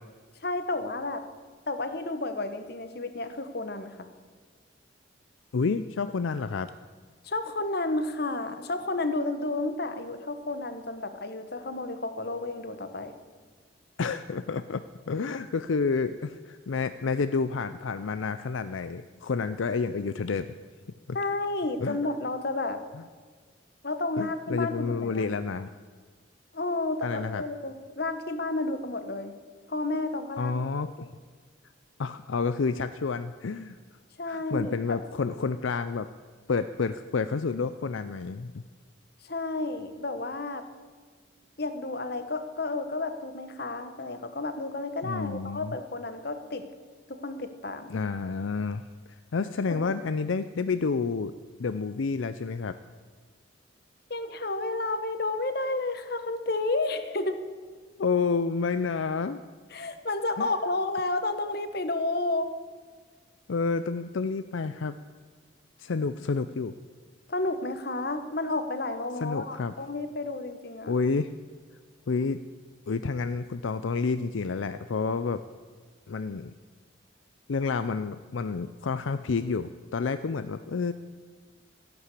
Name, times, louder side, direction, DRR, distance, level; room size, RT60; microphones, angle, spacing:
voice 1, 0.4-1.3 1.7-4.1 7.2-13.1 21.1-22.8 23.8-25.3 26.5-29.3 29.7-30.6 31.0-31.1 34.2-35.0 39.2-40.7 41.6-46.6 47.1-47.9 49.7-49.9 54.1-57.4 59.7-62.5 67.3-71.0, left 2 dB, 50° left, 9 dB, 1.2 m, -31 dB
voice 2, 5.5-6.7 14.0-20.5 21.1-21.2 21.8-22.0 22.9-23.0 24.2-25.7 27.0-27.4 30.4-31.1 32.0-33.8 34.3-36.1 36.5-38.6 45.0-45.7 47.9-48.8 49.3-51.3 51.6-52.8 58.0-59.4 60.4-60.5 63.5-65.0 65.8-66.7 69.2-69.7 70.9-71.3 72.1-72.4 72.9-75.4 76.1-76.5 77.5-80.9, left 4 dB, 75° left, 11 dB, 0.5 m, -29 dB
14.5 x 11.0 x 8.3 m, 1.5 s
head